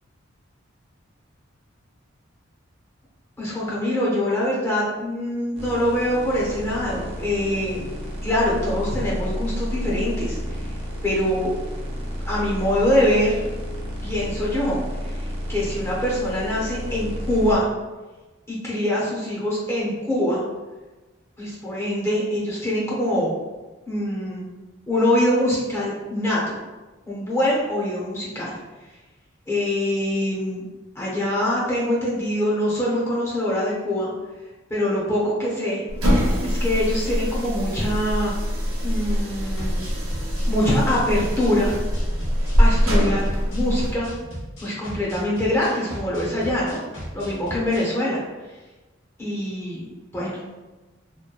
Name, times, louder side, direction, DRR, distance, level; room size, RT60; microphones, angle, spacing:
voice 1, 3.4-7.9 8.2-10.6 11.0-11.5 12.2-13.4 14.0-15.2 15.5-17.7 18.5-20.4 21.4-23.3 23.9-24.5 24.9-26.6 27.1-28.6 29.5-30.6 31.0-34.1 34.7-35.8 36.4-38.3 38.8-39.8 40.5-41.7 42.6-44.1 44.6-46.8 47.1-48.2 49.2-49.9 50.1-50.4, left 1 dB, 15° left, -6 dB, 0.6 m, -24 dB
sound 1, 5.6-17.6, equal, 30° right, 0.4 m, -31 dB
sound 2, 35.9-44.0, equal, 85° right, 0.8 m, -23 dB
sound 3, 39.6-47.9, equal, 55° left, 1.1 m, -37 dB
2.9 x 2.1 x 2.3 m, 1.2 s
head